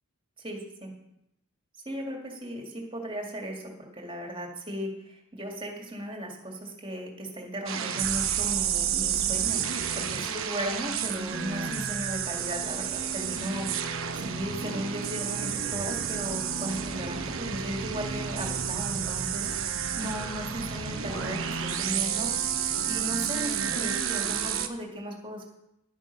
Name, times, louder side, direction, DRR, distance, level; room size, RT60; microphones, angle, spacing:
voice 1, 0.4-0.9 1.9-25.4, equal, 25° right, 1 dB, 2.0 m, -36 dB
sound 1, 7.7-24.7, right 8 dB, 70° right, 0.9 m, -30 dB
11.5 x 9.0 x 5.4 m, 0.83 s
head